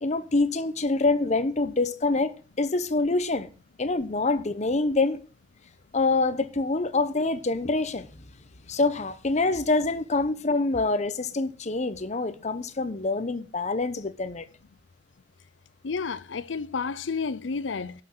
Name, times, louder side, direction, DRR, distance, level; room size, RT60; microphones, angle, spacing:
voice 1, 0.0-2.3 2.6-3.5 3.8-5.2 5.9-8.1 8.7-14.5, left 3 dB, 40° left, 0.9 m, -25 dB
voice 2, 15.8-17.9, left 5 dB, 85° left, 0.6 m, -31 dB
12.0 x 6.0 x 7.7 m
head